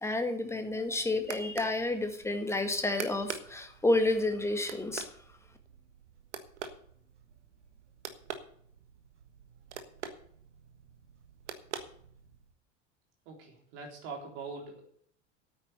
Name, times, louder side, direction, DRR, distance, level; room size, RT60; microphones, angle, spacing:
voice 1, 0.0-5.1, left 2 dB, 5° left, 6 dB, 1.8 m, -30 dB
sound 1, 0.6-12.5, right 7 dB, 70° right, 1.5 m, -46 dB
voice 2, 13.3-14.8, right 4 dB, 55° right, 1 dB, 3.7 m, -43 dB
9.2 x 9.0 x 7.9 m, 0.63 s
figure-of-eight pair, 75°, 36 cm